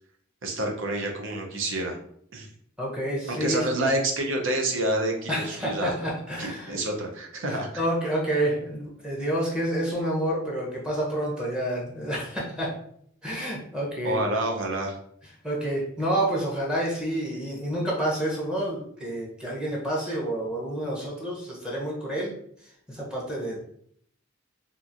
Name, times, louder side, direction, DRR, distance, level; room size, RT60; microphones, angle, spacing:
voice 1, 0.4-2.0 2.3-2.5 3.3-5.9 6.4-7.8 14.0-15.0, right 1 dB, 65° right, 2 dB, 0.6 m, -28 dB
voice 2, 2.8-3.7 5.3-6.8 7.5-12.7 13.2-14.2 15.4-22.3 22.9-23.6, right 1 dB, 5° right, -5 dB, 0.7 m, -29 dB
2.9 x 2.5 x 2.5 m, 0.67 s
head